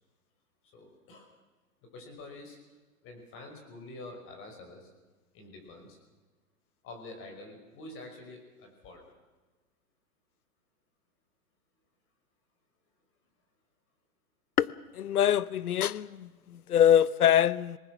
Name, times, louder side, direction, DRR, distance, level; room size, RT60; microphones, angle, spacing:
voice 1, 0.7-1.3 1.8-2.6 3.0-4.9 5.3-6.0 6.8-9.0, left 2 dB, 30° left, 5.7 m, -47 dB
voice 2, 14.9-17.8, left 10 dB, 85° left, 0.9 m, -24 dB
27.5 x 20.0 x 6.1 m
hypercardioid pair, 135°, 44 cm